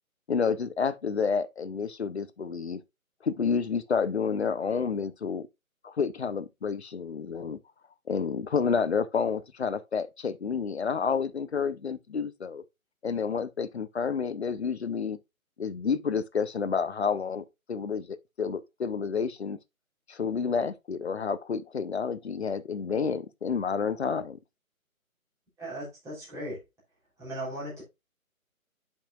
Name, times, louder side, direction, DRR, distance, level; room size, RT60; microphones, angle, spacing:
voice 1, 0.3-2.8 3.2-5.5 5.8-7.6 8.1-12.6 13.0-15.2 15.6-19.6 20.1-24.4, left 6 dB, 50° left, 0.8 m, -29 dB
voice 2, 25.6-26.6 27.2-27.8, right 1 dB, 5° right, 3.4 m, -37 dB
10.0 x 5.7 x 2.4 m
figure-of-eight pair, 145°, 42 cm